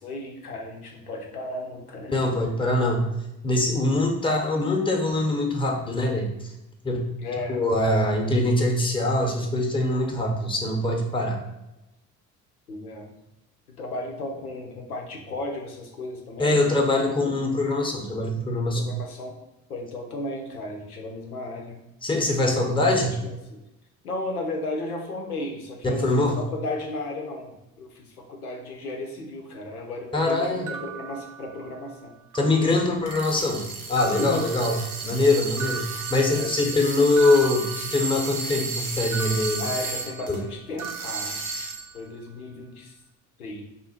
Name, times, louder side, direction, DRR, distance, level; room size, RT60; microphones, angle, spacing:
voice 1, 0.0-2.2 7.2-7.6 12.7-13.1 13.7-17.1 18.7-19.4 19.7-21.8 22.8-23.6 24.0-32.1 34.2-34.4 36.3-36.5 39.6-41.4 41.9-42.9 43.4-43.6, left 2 dB, 90° left, 1 dB, 0.6 m, -34 dB
voice 2, 2.1-3.0 3.4-6.5 6.8-7.1 7.5-11.4 16.4-18.9 22.0-23.2 25.8-26.4 30.1-30.7 32.3-39.7 40.3-40.4, left 2 dB, 10° left, 2 dB, 0.8 m, -23 dB
sound 1, 30.7-31.9 32.3-33.1 34.0-35.2 35.6-38.5 39.1-40.5 40.8-42.1, right 7 dB, 45° right, 0.7 m, -39 dB
sound 2, 33.0-40.4 40.8-42.0, right 4 dB, 90° right, 0.5 m, -33 dB
3.5 x 2.4 x 4.2 m, 0.95 s
figure-of-eight pair, 45°, 43 cm